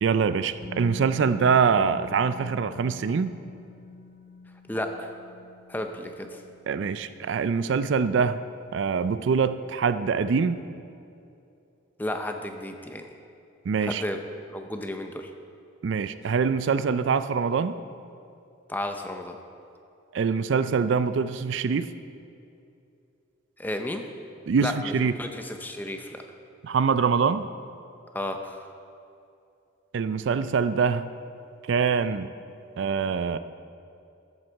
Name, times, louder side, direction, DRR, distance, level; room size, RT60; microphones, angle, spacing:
voice 1, 0.0-3.3 6.7-8.4 8.7-10.6 13.7-14.0 15.8-17.8 20.1-21.9 24.5-25.1 26.6-27.5 29.9-31.1 31.6-32.3 32.8-33.4, right 5 dB, 65° right, 12 dB, 0.4 m, -24 dB
Musical instrument, 0.6-8.5 8.8-9.0, left 3 dB, 55° left, 0.7 m, -45 dB
voice 2, 4.7-5.2 5.7-6.4 12.0-13.1 13.8-14.2 14.5-15.3 18.7-19.4 23.6-24.0 24.6-26.2 28.1-28.6, left 1 dB, 10° left, 5 dB, 0.6 m, -33 dB
13.0 x 8.1 x 4.6 m, 2.6 s
head